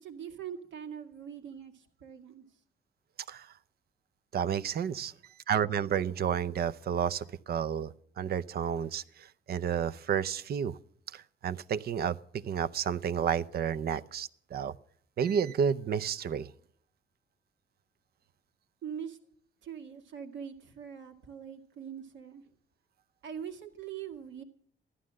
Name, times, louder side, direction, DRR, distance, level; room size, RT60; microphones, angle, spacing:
voice 1, 0.0-2.5 18.8-19.2 19.6-22.4 23.2-24.4, right 8 dB, 75° right, 2.1 m, -42 dB
voice 2, 4.3-5.1 5.5-10.8 11.1-14.7 15.2-16.5, right 8 dB, 55° right, 0.6 m, -31 dB
14.5 x 11.5 x 7.5 m
cardioid pair, 125°, 19 cm